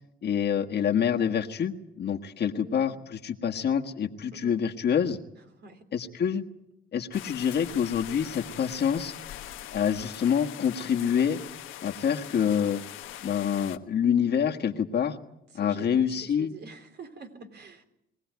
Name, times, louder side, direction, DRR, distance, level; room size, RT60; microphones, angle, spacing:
voice 1, 0.2-5.2 5.9-6.4 6.9-9.1 9.7-11.4 11.8-12.8 13.2-15.2 15.5-16.5, left 8 dB, 55° left, 3 dB, 1.7 m, -26 dB
voice 2, 2.6-3.0 4.3-4.6 5.3-5.9 15.5-17.8, right 3 dB, 55° right, 6 dB, 3.5 m, -46 dB
sound 1, 7.1-13.8, left 12 dB, 90° left, 1.3 m, -42 dB
22.5 x 17.5 x 9.4 m, 0.84 s
cardioid pair, 90°, 20 cm